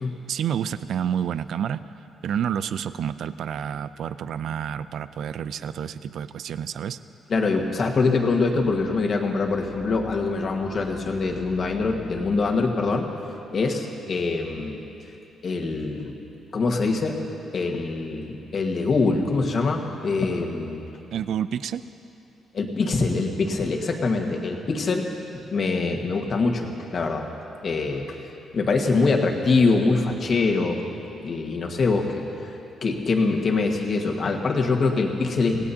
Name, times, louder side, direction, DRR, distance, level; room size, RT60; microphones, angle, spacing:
voice 1, 0.3-1.8 2.2-7.0 21.1-21.9, right 8 dB, 65° right, 14 dB, 0.4 m, -29 dB
voice 2, 7.3-13.1 13.5-14.8 15.4-16.1 16.5-17.2 17.5-20.9 22.5-25.1 25.5-27.3 27.6-28.2 28.5-30.8 31.2-32.5 32.8-35.6, left 3 dB, 40° left, 1 dB, 1.5 m, -24 dB
27.0 x 17.5 x 2.8 m, 2.8 s
cardioid pair, 150°, 0 cm